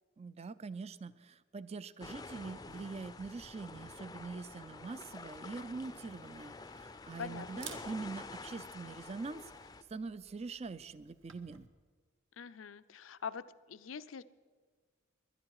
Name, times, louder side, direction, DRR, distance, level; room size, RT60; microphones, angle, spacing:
voice 1, 0.2-11.7, right 4 dB, 35° right, 16 dB, 0.4 m, -44 dB
sound 1, 2.0-9.8, left 3 dB, 20° left, 0.5 m, -48 dB
Camera, 5.8-11.7, right 7 dB, 70° right, 1.3 m, -56 dB
voice 2, 7.2-7.6 12.4-14.2, left 6 dB, 80° left, 15 dB, 0.6 m, -44 dB
22.0 x 11.0 x 4.8 m, 1.5 s
head